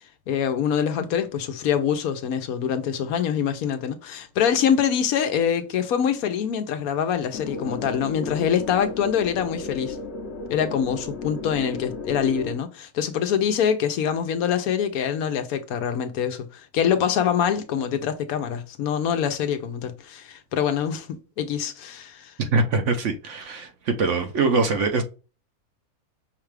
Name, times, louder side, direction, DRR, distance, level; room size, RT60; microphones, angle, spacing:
voice 1, 0.3-10.0 10.5-22.3, left 8 dB, 75° left, 1.1 m, -25 dB
sound 1, 7.3-12.5, left 4 dB, 55° left, 0.9 m, -34 dB
voice 2, 22.4-25.0, right 3 dB, 60° right, 0.9 m, -23 dB
5.6 x 2.3 x 3.2 m
omnidirectional pair, 1.6 m